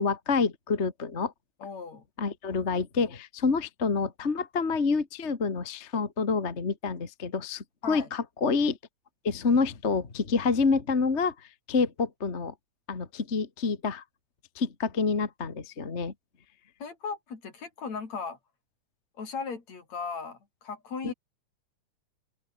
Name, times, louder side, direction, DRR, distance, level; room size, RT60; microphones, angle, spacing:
voice 1, 0.0-1.3 2.2-8.8 9.2-12.5 12.9-14.0 14.6-16.1 21.0-21.1, left 4 dB, 25° left, 1.9 m, -28 dB
voice 2, 1.6-2.0 7.8-8.1 16.8-18.4 19.2-21.1, left 5 dB, 65° left, 5.3 m, -37 dB
open air
omnidirectional pair, 3.4 m